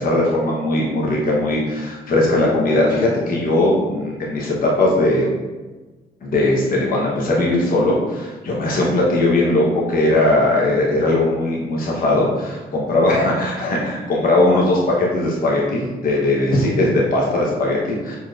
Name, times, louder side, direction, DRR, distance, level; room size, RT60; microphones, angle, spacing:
voice 1, 0.0-5.3 6.2-18.2, left 1 dB, 55° left, -3 dB, 0.9 m, -19 dB
4.5 x 2.9 x 2.4 m, 1.2 s
supercardioid pair, 55°, 18 cm